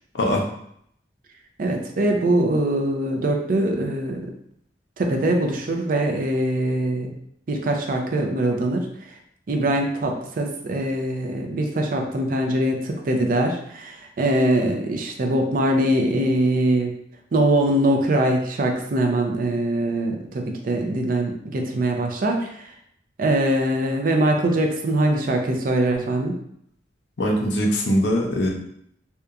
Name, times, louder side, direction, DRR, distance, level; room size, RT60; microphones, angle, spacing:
voice 1, 1.6-4.2 5.0-7.1 7.5-8.9 9.5-16.9 17.3-22.6 23.2-26.4, right 1 dB, 50° right, 3 dB, 0.4 m, -22 dB
voice 2, 27.2-28.5, equal, 75° left, 0 dB, 0.5 m, -21 dB
2.8 x 2.2 x 2.4 m, 0.70 s
head